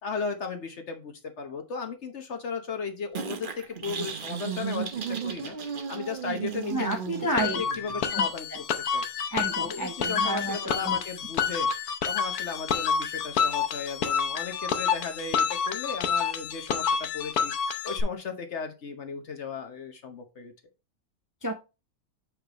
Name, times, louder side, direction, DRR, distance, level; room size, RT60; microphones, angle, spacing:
voice 1, 0.0-5.6 5.9-8.5 8.9-9.0 9.6-11.7 12.0-17.5 17.8-20.5, left 5 dB, 55° left, 1.2 m, -36 dB
sound 1, 3.2-8.1, right 7 dB, 45° right, 0.8 m, -35 dB
voice 2, 6.7-7.6 8.1-8.6 9.3-11.0 21.4-21.5, right 1 dB, 20° right, 0.5 m, -31 dB
sound 2, 7.4-18.0, left 6 dB, 85° left, 1.3 m, -28 dB
6.5 x 5.3 x 3.0 m
omnidirectional pair, 1.6 m